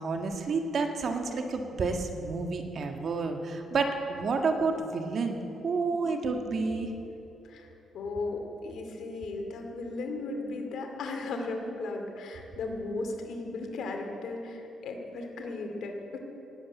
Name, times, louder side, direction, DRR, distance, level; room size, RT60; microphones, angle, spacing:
voice 1, 0.0-6.9, right 4 dB, 55° right, 4 dB, 1.7 m, -30 dB
voice 2, 7.9-16.2, left 2 dB, 70° left, 3 dB, 2.5 m, -36 dB
18.0 x 8.1 x 9.2 m, 2.9 s
cardioid pair, 90°, 0 cm